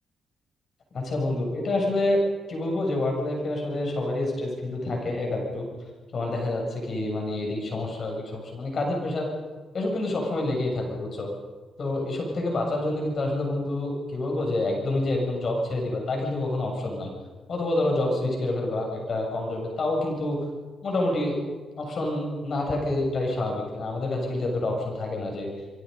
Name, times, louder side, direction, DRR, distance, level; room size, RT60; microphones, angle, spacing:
voice 1, 0.9-2.2 2.5-5.7 6.1-9.3 9.7-11.3 11.8-17.1 17.5-20.4 20.8-21.4 21.8-25.5, left 2 dB, 50° left, 0 dB, 7.4 m, -27 dB
26.5 x 23.5 x 5.4 m, 1.4 s
cardioid pair, 80°, 0 cm